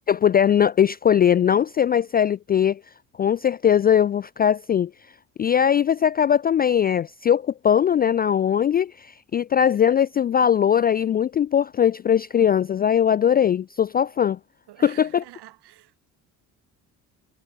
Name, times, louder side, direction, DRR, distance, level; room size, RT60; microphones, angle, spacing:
voice 1, 0.1-2.8 3.2-4.9 5.4-9.1 9.3-14.4 14.8-15.2, left 9 dB, 25° left, 0.3 m, -20 dB
voice 2, 14.7-16.1, right 15 dB, 60° right, 4.3 m, -47 dB
hypercardioid pair, 55°, 45 cm